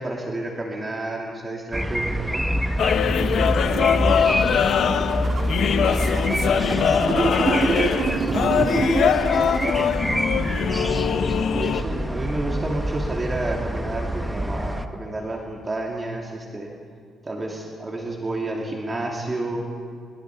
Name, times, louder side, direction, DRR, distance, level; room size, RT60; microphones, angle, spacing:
voice 1, 0.0-2.4 10.6-11.2 11.5-16.7 17.2-19.6, right 2 dB, 25° right, -1 dB, 2.8 m, -30 dB
sound 1, 1.7-14.9, equal, 5° right, 1.2 m, -27 dB
sound 2, 2.8-11.8, left 7 dB, 65° left, 1.0 m, -22 dB
voice 2, 3.2-10.3 11.7-12.7, right 7 dB, 80° right, 1 dB, 1.5 m, -38 dB
sound 3, 4.6-9.9, right 4 dB, 45° right, 1.6 m, -27 dB
29.0 x 22.0 x 4.9 m, 2.3 s
cardioid pair, 90°, 0 cm